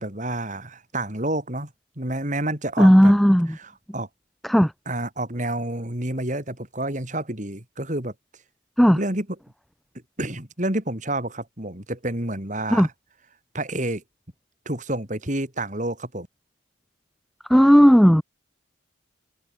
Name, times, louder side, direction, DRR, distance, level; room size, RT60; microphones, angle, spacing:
voice 1, 0.0-3.1 3.5-4.1 4.9-8.1 8.9-9.3 10.2-12.9 13.5-14.0 14.7-16.3, right 1 dB, 40° right, 3.9 m, -29 dB
voice 2, 2.8-3.6 4.4-4.7 8.8-9.0 12.7-12.9 17.5-18.2, equal, ahead, 0.3 m, -14 dB
head